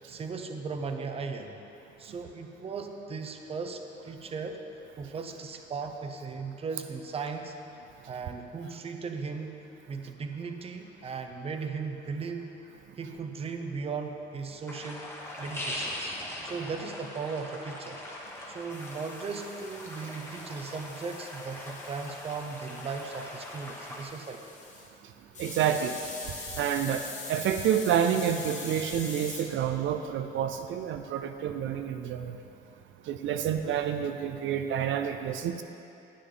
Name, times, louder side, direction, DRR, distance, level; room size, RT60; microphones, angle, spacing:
voice 1, 0.1-1.6 2.0-4.6 5.0-7.5 8.1-12.5 13.0-15.1 15.4-16.2 16.4-18.0 18.5-24.4 35.3-35.4, right 5 dB, 30° right, 6 dB, 0.6 m, -37 dB
sound 1, 14.7-24.0, left 1 dB, 10° left, 1.1 m, -41 dB
sound 2, 18.7-24.9 25.3-29.4, left 3 dB, 35° left, 1.3 m, -43 dB
voice 2, 25.4-26.0 26.6-32.4 33.0-35.6, right 9 dB, 75° right, 7 dB, 0.5 m, -29 dB
10.0 x 9.1 x 3.8 m, 2.9 s
cardioid pair, 140°, 20 cm